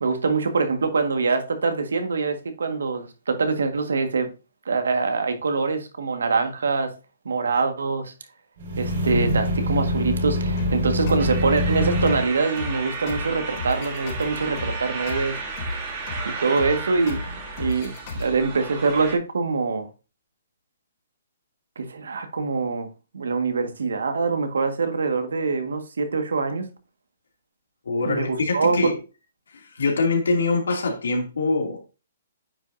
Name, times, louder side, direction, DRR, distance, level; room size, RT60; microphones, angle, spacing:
voice 1, 0.0-4.3 4.7-6.9 7.3-8.1 8.8-15.4 16.3-19.9 21.8-22.9 23.1-26.7 28.1-28.9, right 4 dB, 85° right, 1.7 m, -24 dB
sound 1, 8.6-12.2, left 1 dB, 55° right, 4.7 m, -24 dB
sound 2, 10.6-18.6, left 2 dB, 45° left, 3.1 m, -35 dB
sound 3, 11.2-19.2, right 4 dB, 30° right, 2.5 m, -34 dB
voice 2, 27.9-29.0 29.5-31.8, left 3 dB, 85° left, 2.6 m, -24 dB
9.3 x 5.6 x 2.7 m
hypercardioid pair, 155°, 0 cm